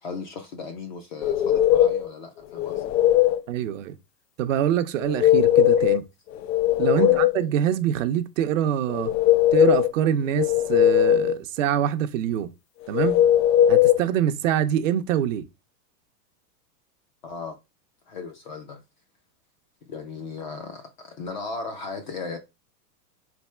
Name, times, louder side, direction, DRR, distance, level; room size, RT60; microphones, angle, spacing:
voice 1, 0.0-2.9 6.9-7.2 17.2-17.6 18.1-18.8 19.9-22.4, left 4 dB, 30° left, 0.4 m, -36 dB
sound 1, 1.2-2.1 2.6-3.4 5.0-6.0 6.4-7.5 8.9-9.9 10.4-11.4 12.9-14.0, left 11 dB, 80° left, 0.6 m, -19 dB
voice 2, 3.5-4.0 4.4-6.1 6.8-9.1 9.5-12.5 12.9-13.2 13.7-15.5, right 10 dB, 50° right, 0.6 m, -25 dB
3.4 x 2.8 x 4.3 m
supercardioid pair, 155°, 50 cm